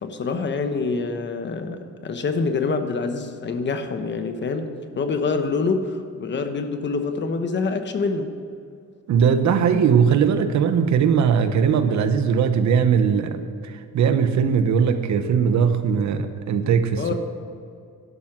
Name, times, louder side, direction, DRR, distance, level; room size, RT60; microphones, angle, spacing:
voice 1, 0.0-8.4 17.0-17.1, left 4 dB, 35° left, 7 dB, 1.0 m, -26 dB
voice 2, 9.1-17.1, right 7 dB, 60° right, 9 dB, 1.1 m, -20 dB
12.5 x 11.5 x 6.1 m, 2.4 s
cardioid pair, 165°, 31 cm